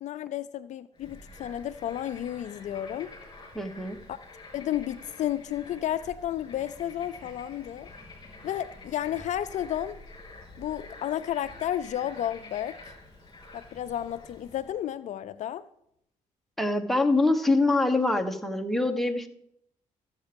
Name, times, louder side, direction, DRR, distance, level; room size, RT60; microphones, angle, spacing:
voice 1, 0.0-3.1 4.1-4.2 4.5-7.9 8.4-10.0 10.6-12.8 13.5-15.6, left 11 dB, 65° left, 0.4 m, -32 dB
Bird / Frog, 1.0-14.7, left 2 dB, 35° left, 3.6 m, -48 dB
voice 2, 3.5-4.0 16.6-19.3, left 2 dB, ahead, 1.4 m, -24 dB
14.0 x 7.3 x 5.2 m
cardioid pair, 85°, 13 cm